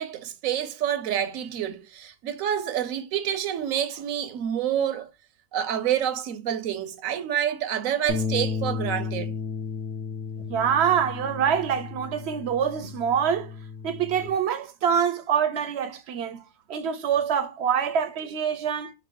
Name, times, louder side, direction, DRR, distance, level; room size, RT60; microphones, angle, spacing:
voice 1, 0.0-5.1 5.5-9.3, right 10 dB, 85° right, 1.0 m, -28 dB
sound 1, 8.1-14.3, left 5 dB, 55° left, 0.8 m, -33 dB
voice 2, 10.5-13.5 13.8-16.4 16.7-18.9, right 8 dB, 65° right, 0.7 m, -25 dB
3.0 x 2.7 x 4.5 m
omnidirectional pair, 1.4 m